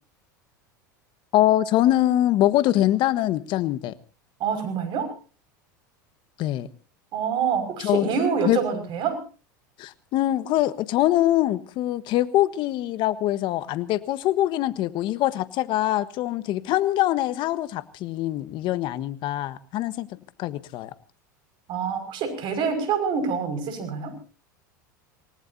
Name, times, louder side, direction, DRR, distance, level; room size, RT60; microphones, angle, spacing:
voice 1, 1.3-3.9 6.4-6.7 7.8-8.6 9.8-20.9, left 14 dB, 50° left, 15 dB, 1.4 m, -23 dB
voice 2, 4.4-5.1 7.1-9.2 21.7-24.1, right 6 dB, 50° right, 9 dB, 5.7 m, -26 dB
27.5 x 19.0 x 2.8 m, 0.34 s
hypercardioid pair, 90°, 10 cm